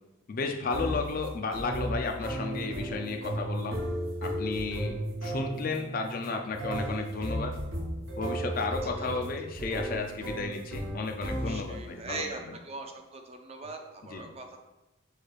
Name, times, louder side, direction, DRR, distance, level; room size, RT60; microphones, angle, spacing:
voice 1, 0.3-3.8 4.2-7.5 8.2-12.2 14.1-14.3, left 4 dB, 40° left, 4 dB, 0.4 m, -33 dB
sound 1, 0.7-11.9, right 1 dB, 70° right, 1.0 m, -35 dB
voice 2, 11.3-12.4 12.6-14.6, right 3 dB, 30° right, 4 dB, 0.4 m, -41 dB
6.4 x 3.2 x 2.4 m, 1.0 s
head